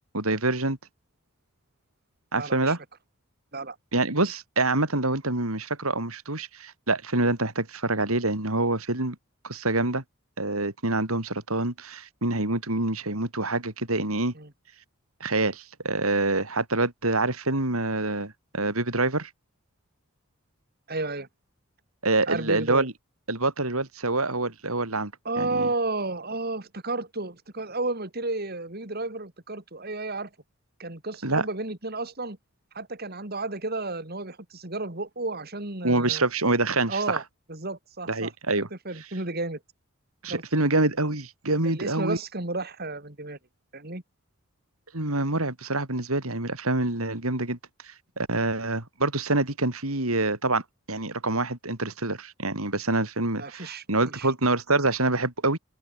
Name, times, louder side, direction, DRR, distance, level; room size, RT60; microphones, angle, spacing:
voice 1, 0.1-0.8 2.3-2.8 3.9-9.2 9.4-10.0 10.4-14.3 15.2-19.3 22.0-22.9 23.3-25.1 25.4-25.7 31.2-31.4 35.8-37.2 38.1-38.7 40.2-42.2 44.9-47.6 47.8-50.6 50.9-55.6, right 2 dB, 80° right, 4.5 m, -26 dB
voice 2, 2.3-2.7 3.5-3.8 14.3-14.5 20.9-21.3 22.3-22.9 25.2-30.3 30.8-32.4 32.7-36.3 36.9-37.2 37.5-39.6 40.3-40.4 41.6-43.4 43.7-44.0 53.4-54.3, right 2 dB, 45° right, 2.9 m, -32 dB
open air
head